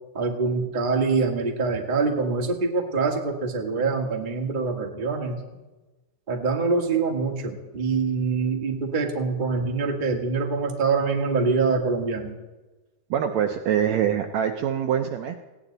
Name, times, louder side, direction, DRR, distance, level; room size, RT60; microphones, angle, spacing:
voice 1, 0.1-5.4 6.3-12.3, right 4 dB, 25° right, 2 dB, 1.1 m, -25 dB
voice 2, 13.1-15.4, right 9 dB, 70° right, 6 dB, 1.8 m, -24 dB
19.5 x 16.5 x 4.0 m, 1.1 s
omnidirectional pair, 3.8 m